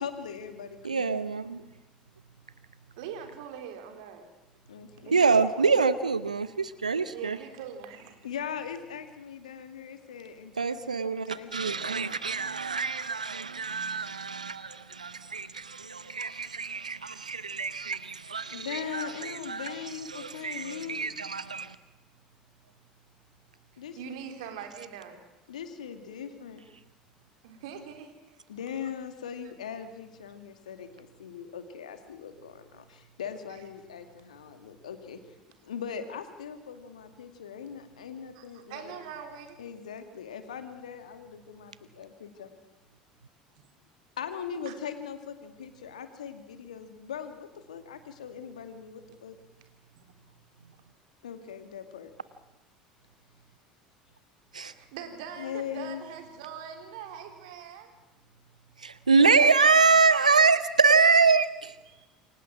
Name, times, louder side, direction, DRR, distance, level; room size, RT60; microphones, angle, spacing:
voice 1, 0.0-1.2 4.7-5.2 6.9-7.0 8.2-11.7 18.5-21.1 23.8-24.2 25.5-26.6 28.5-35.2 35.6-38.9 39.6-42.5 44.2-49.4 51.2-52.1 55.4-56.0, left 7 dB, 75° left, 8 dB, 2.4 m, -40 dB
voice 2, 0.8-1.6 5.1-7.4 10.6-19.7 20.1-21.7 54.5-54.7 58.8-61.7, right 4 dB, 85° right, 16 dB, 0.7 m, -25 dB
voice 3, 3.0-4.3 5.0-5.8 7.1-8.2 13.9-14.2 16.3-17.5 18.3-18.6 24.0-25.2 27.4-28.4 38.3-38.4 38.7-39.6 44.7-44.8 54.6-57.9 59.7-59.8 61.9-62.1, right 7 dB, 65° right, 5 dB, 3.7 m, -43 dB
28.0 x 23.5 x 6.2 m, 1.0 s
figure-of-eight pair, 70°, 4 cm